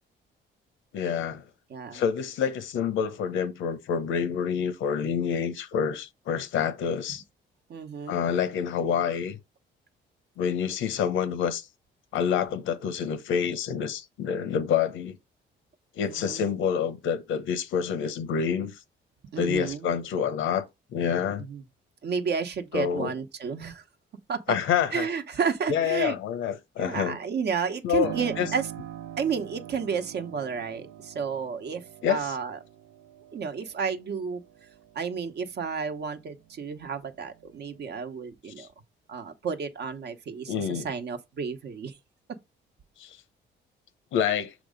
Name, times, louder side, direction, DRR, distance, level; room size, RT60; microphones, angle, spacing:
voice 1, 0.9-1.4 1.9-7.2 8.1-9.4 10.4-11.7 12.1-15.2 15.9-18.8 19.4-20.6 20.9-21.5 22.7-23.1 24.5-25.1 25.7-27.2 27.8-28.5 32.0-32.3 38.6-38.7 40.5-40.9 43.0-43.2 44.1-44.5, left 7 dB, 80° left, 0.9 m, -27 dB
voice 2, 1.7-2.0 7.7-8.2 16.1-16.4 19.3-19.9 21.4-21.6 22.0-23.8 24.3-24.6 24.9-26.1 26.8-28.7 29.2-31.8 32.1-32.6 33.3-34.4 34.9-38.7 39.1-41.9, right 6 dB, 60° right, 1.0 m, -31 dB
Piano, 28.0-36.5 36.9-37.9, right 11 dB, 80° right, 0.6 m, -43 dB
6.3 x 3.0 x 5.1 m
cardioid pair, 90°, 20 cm